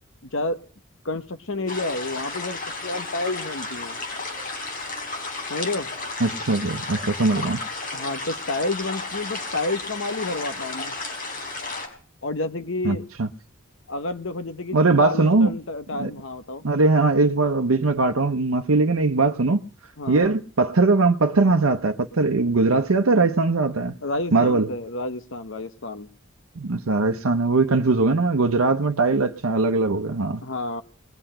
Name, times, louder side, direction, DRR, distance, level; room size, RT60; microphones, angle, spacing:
voice 1, 0.2-0.6 1.0-4.0 5.5-5.9 7.9-10.9 12.2-13.1 13.9-16.6 20.0-20.4 24.0-26.1 30.4-30.8, left 2 dB, 65° left, 1.1 m, -30 dB
sound 1, 1.7-11.9, left 3 dB, 40° left, 4.7 m, -33 dB
voice 2, 6.2-7.6 12.8-13.3 14.7-15.5 16.0-16.1 16.6-19.6 20.1-24.0 24.3-24.7 26.6-30.4, right 3 dB, 90° right, 0.8 m, -20 dB
21.0 x 8.0 x 8.8 m
head